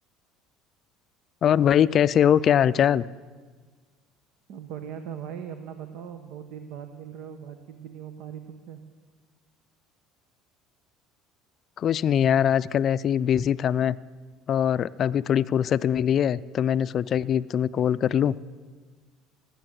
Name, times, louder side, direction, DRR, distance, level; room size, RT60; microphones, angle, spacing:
voice 1, 1.4-3.0 11.8-14.0 14.5-18.4, left 9 dB, 45° left, 17 dB, 0.4 m, -22 dB
voice 2, 4.5-8.8, right 8 dB, 70° right, 8 dB, 1.0 m, -39 dB
18.0 x 8.5 x 7.7 m, 1.5 s
supercardioid pair, 100°, 0 cm